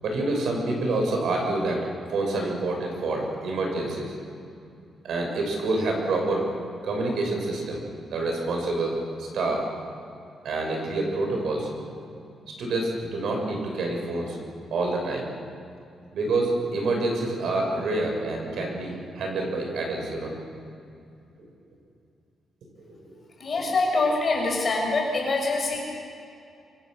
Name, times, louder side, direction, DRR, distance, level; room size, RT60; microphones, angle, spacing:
voice 1, 0.0-4.1 5.0-6.5 6.8-7.8 8.1-9.6 10.4-11.8 12.6-14.4 14.7-15.3 16.1-20.3 21.4-21.5 22.8-23.1, right 2 dB, 70° right, 1 dB, 6.3 m, -27 dB
voice 2, 23.4-25.8, left 3 dB, 35° left, -1 dB, 6.1 m, -24 dB
25.5 x 25.0 x 6.6 m, 2.6 s
wide cardioid pair, 180°, 0 cm